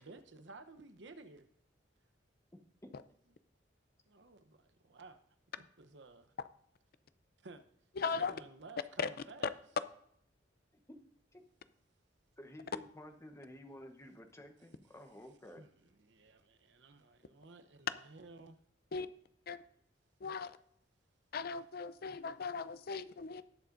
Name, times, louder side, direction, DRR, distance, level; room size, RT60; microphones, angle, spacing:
voice 1, 0.0-1.5 4.1-5.2 5.6-6.3 7.4-7.6 8.0-9.5 15.6-18.6, right 3 dB, 70° right, 0.8 m, -55 dB
voice 2, 2.5-2.9 10.9-11.0 11.3-11.4 12.4-15.6, left 1 dB, 15° left, 1.0 m, -52 dB
voice 3, 8.0-8.3 9.0-9.1 18.9-19.1 19.5-19.6 20.2-20.6 21.3-23.4, left 5 dB, 55° left, 0.5 m, -38 dB
19.0 x 7.0 x 2.6 m
head